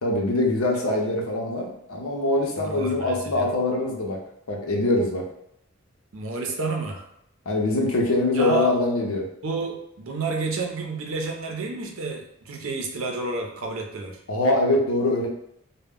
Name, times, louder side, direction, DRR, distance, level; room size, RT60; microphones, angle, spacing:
voice 1, 0.0-4.2 4.5-5.3 7.5-9.3 14.3-15.3, left 2 dB, 90° left, 0 dB, 0.6 m, -23 dB
voice 2, 2.6-3.5 6.1-7.1 8.3-8.7 9.4-14.2, right 3 dB, 75° right, 1 dB, 0.5 m, -30 dB
2.1 x 2.0 x 3.5 m, 0.75 s
head